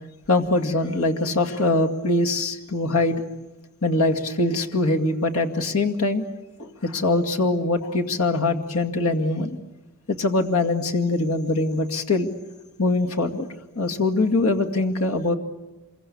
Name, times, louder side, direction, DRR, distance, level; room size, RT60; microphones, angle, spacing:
voice 1, 0.3-3.2 3.8-6.2 6.6-9.6 10.1-12.3 12.8-13.5 13.8-15.4, left 2 dB, 80° left, 3 dB, 2.2 m, -23 dB
27.0 x 23.0 x 8.5 m, 1.1 s
head